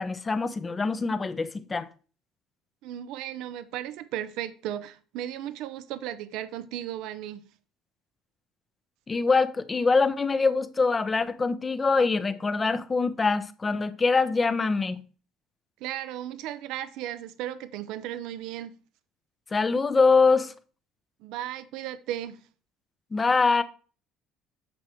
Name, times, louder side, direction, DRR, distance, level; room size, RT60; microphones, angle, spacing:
voice 1, 0.0-1.9 9.1-15.0 19.5-20.5 23.1-23.6, left 4 dB, 25° left, 0.9 m, -24 dB
voice 2, 2.8-7.4 15.8-18.7 21.2-22.4, right 12 dB, 75° right, 0.8 m, -35 dB
9.4 x 6.3 x 3.2 m
supercardioid pair, 95°, 0 cm